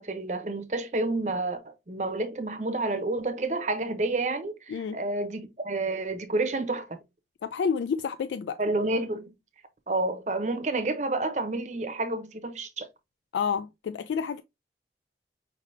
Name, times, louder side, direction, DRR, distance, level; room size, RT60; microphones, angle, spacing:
voice 1, 0.0-7.0 8.6-9.3 9.9-12.9, right 2 dB, 40° right, 0.7 m, -29 dB
voice 2, 7.4-8.6 13.3-14.4, left 6 dB, 85° left, 0.3 m, -29 dB
5.1 x 3.3 x 2.6 m
head